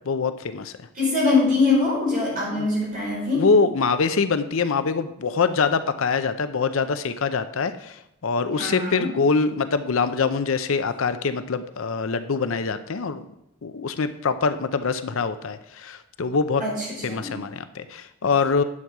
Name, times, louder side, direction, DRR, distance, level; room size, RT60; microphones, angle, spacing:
voice 1, 0.1-0.7 2.6-2.7 3.4-8.0 8.2-13.2 13.6-16.6 17.0-18.6, left 4 dB, 65° left, 11 dB, 0.5 m, -24 dB
voice 2, 1.0-3.5 8.6-9.2 16.6-17.3, left 3 dB, 40° right, -4 dB, 4.4 m, -23 dB
9.7 x 7.6 x 4.7 m, 0.84 s
head